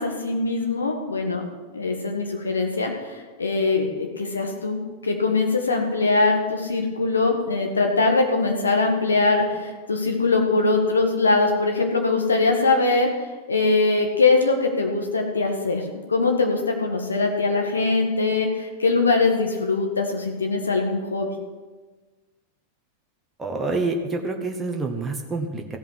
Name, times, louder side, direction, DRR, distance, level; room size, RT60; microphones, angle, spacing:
voice 1, 0.0-1.4 1.7-13.1 13.5-15.8 16.1-21.3, left 3 dB, 75° left, 2 dB, 1.9 m, -22 dB
voice 2, 23.4-25.8, right 3 dB, 15° right, 2 dB, 1.5 m, -27 dB
15.0 x 5.5 x 9.9 m, 1.3 s
figure-of-eight pair, 90°, 0 cm